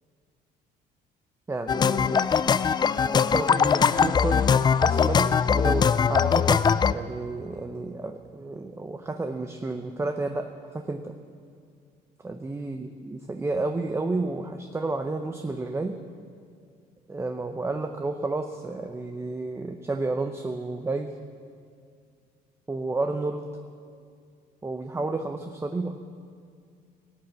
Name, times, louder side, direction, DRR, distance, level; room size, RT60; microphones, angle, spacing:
voice 1, 1.5-2.2 3.1-11.1 12.2-16.0 17.1-21.1 22.7-23.5 24.6-26.0, right 3 dB, 15° right, 6 dB, 0.7 m, -31 dB
sound 1, 1.7-6.9, left 6 dB, 25° left, 0.3 m, -21 dB
18.0 x 7.9 x 7.3 m, 2.3 s
cardioid pair, 110°, 17 cm